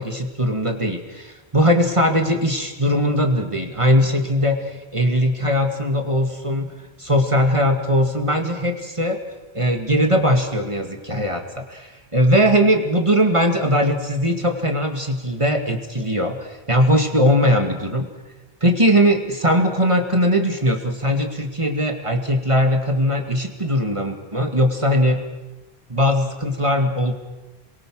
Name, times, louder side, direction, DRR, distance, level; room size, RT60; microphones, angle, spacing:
voice 1, 0.0-6.7 7.0-9.2 9.5-18.1 18.6-25.2 25.9-27.1, equal, 30° right, 4 dB, 2.2 m, -20 dB
27.5 x 22.0 x 6.3 m, 1.1 s
omnidirectional pair, 1.0 m